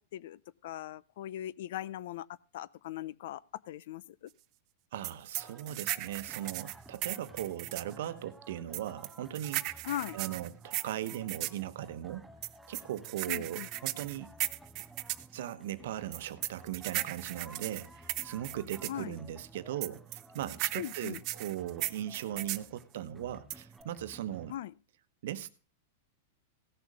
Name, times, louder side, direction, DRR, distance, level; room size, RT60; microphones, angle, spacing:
voice 1, 0.1-2.3 2.5-4.3 9.8-10.2 13.3-13.7 18.9-19.2 20.7-21.2 24.5-24.7, left 12 dB, 65° left, 0.5 m, -40 dB
voice 2, 4.9-9.9 10.1-12.3 12.7-14.3 15.3-24.5 25.2-25.5, right 12 dB, 70° right, 1.0 m, -39 dB
sound 1, 5.0-7.9 8.7-11.6 12.4-15.3 16.1-19.0 19.8-22.7 23.5-23.8, right 18 dB, 40° right, 0.6 m, -37 dB
sound 2, 5.3-24.5, right 2 dB, 5° right, 0.7 m, -54 dB
16.5 x 6.7 x 4.9 m
hypercardioid pair, 135°, 0 cm